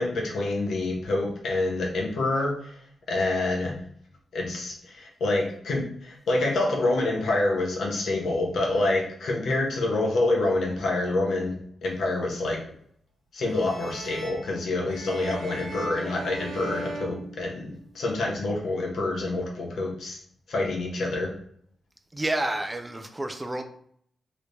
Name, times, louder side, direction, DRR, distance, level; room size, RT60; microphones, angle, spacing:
voice 1, 0.0-2.7 3.1-3.7 4.3-11.5 11.8-12.6 13.3-20.2 20.5-21.3, left 2 dB, 75° left, -1 dB, 0.9 m, -27 dB
sound 1, 13.4-18.0, right 2 dB, 80° right, 0.9 m, -39 dB
voice 2, 22.1-23.6, right 1 dB, 15° right, 6 dB, 0.4 m, -29 dB
3.1 x 2.6 x 3.3 m, 0.65 s
cardioid pair, 80°, 0 cm